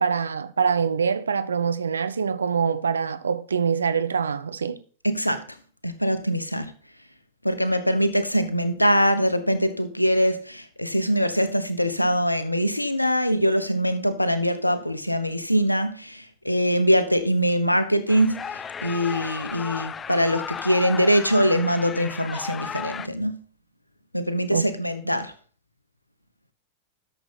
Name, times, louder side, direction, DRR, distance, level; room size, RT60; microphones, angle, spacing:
voice 1, 0.0-4.8 24.5-24.7, right 6 dB, 70° right, 0.7 m, -24 dB
voice 2, 5.0-5.4 5.8-6.7 7.4-23.4 24.1-25.3, equal, 85° left, 1.0 m, -23 dB
sound 1, 18.1-23.1, left 7 dB, 20° left, 0.5 m, -34 dB
12.5 x 6.9 x 4.3 m
figure-of-eight pair, 90°, 0 cm